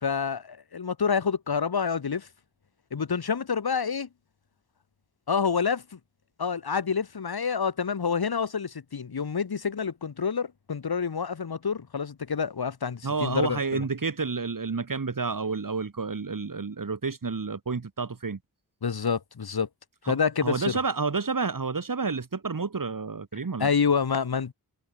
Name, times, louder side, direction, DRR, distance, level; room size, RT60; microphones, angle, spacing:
voice 1, 0.0-2.3 2.9-4.1 5.3-6.0 6.4-13.8 18.8-19.7 20.1-20.8 23.6-24.5, left 6 dB, 85° left, 3.3 m, -28 dB
voice 2, 13.0-18.4 20.1-20.2 20.4-23.7, right 4 dB, 60° right, 5.9 m, -30 dB
wide cardioid pair, 95°, 36 cm